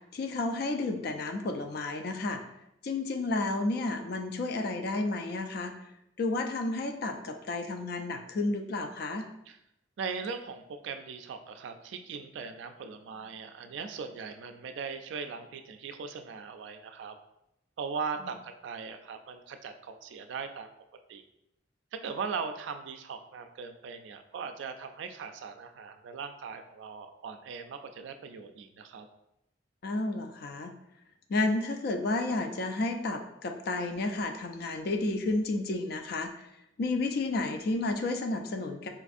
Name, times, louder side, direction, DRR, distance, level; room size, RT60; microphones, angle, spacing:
voice 1, 0.1-2.4 2.8-5.7 6.2-9.3 29.8-30.7 31.3-36.3 36.8-38.9, left 2 dB, 55° left, 5 dB, 0.3 m, -31 dB
voice 2, 10.0-17.2 17.8-20.7 21.1-21.2 21.9-29.1, right 5 dB, 70° right, 8 dB, 0.3 m, -39 dB
3.9 x 2.5 x 2.4 m, 0.83 s
head